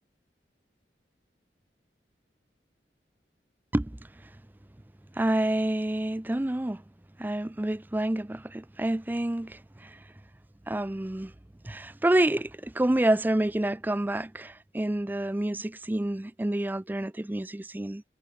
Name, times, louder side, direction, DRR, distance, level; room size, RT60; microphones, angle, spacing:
voice 1, 5.2-6.8 7.2-10.0 10.7-11.3 11.6-18.0, right 1 dB, 10° right, 0.4 m, -28 dB
head